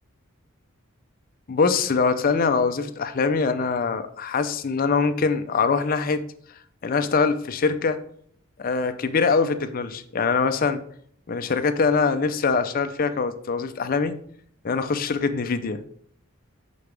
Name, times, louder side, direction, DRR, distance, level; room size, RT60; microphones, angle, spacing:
voice 1, 1.5-6.2 6.8-8.0 8.6-10.8 11.3-14.2 14.6-15.8, left 4 dB, 45° left, 9 dB, 0.5 m, -23 dB
5.8 x 5.2 x 3.3 m, 0.63 s
head